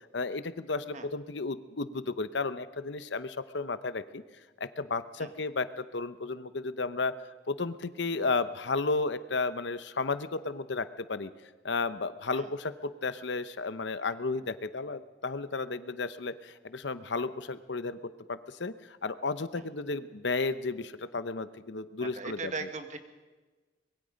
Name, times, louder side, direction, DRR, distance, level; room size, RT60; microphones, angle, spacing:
voice 1, 0.1-4.2 4.6-7.1 7.5-11.3 11.6-18.0 18.3-22.7, left 3 dB, 70° left, 13 dB, 0.9 m, -33 dB
voice 2, 22.0-23.0, right 4 dB, 40° right, 7 dB, 1.6 m, -38 dB
24.0 x 21.5 x 5.2 m, 1.3 s
head